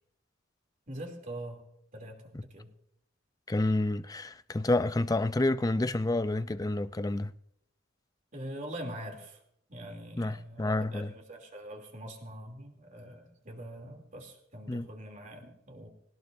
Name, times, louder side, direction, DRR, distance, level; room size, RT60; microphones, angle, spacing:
voice 1, 0.9-1.6 1.9-2.7 8.3-9.4 9.7-15.9, right 1 dB, 40° right, 3.0 m, -43 dB
voice 2, 3.5-7.3 10.2-11.1 14.7-14.9, left 2 dB, 20° left, 0.5 m, -29 dB
20.5 x 18.5 x 2.7 m
head